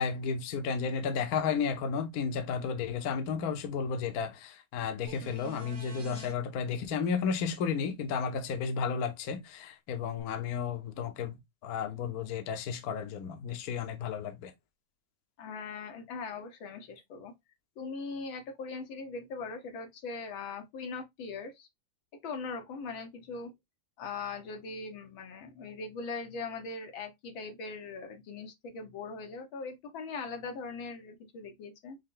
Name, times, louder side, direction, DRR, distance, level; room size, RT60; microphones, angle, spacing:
voice 1, 0.0-14.5, left 6 dB, 60° left, 1.1 m, -33 dB
sound 1, 5.1-6.3 10.2-10.3, right 2 dB, 50° right, 1.6 m, -47 dB
voice 2, 15.4-17.3 17.8-21.7 22.2-23.5 24.0-32.0, left 4 dB, 85° left, 1.8 m, -40 dB
5.4 x 2.2 x 3.6 m
omnidirectional pair, 2.1 m